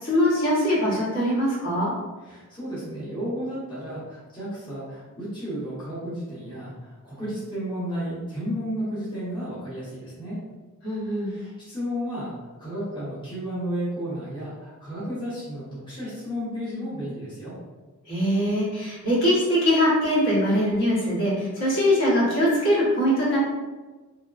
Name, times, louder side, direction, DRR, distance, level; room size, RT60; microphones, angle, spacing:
voice 1, 0.0-1.9 10.8-11.3 18.1-23.4, equal, 60° left, -8 dB, 1.1 m, -22 dB
voice 2, 2.2-10.4 11.2-12.3 12.6-17.5, equal, 20° left, -10 dB, 0.9 m, -33 dB
2.9 x 2.1 x 2.4 m, 1.2 s
head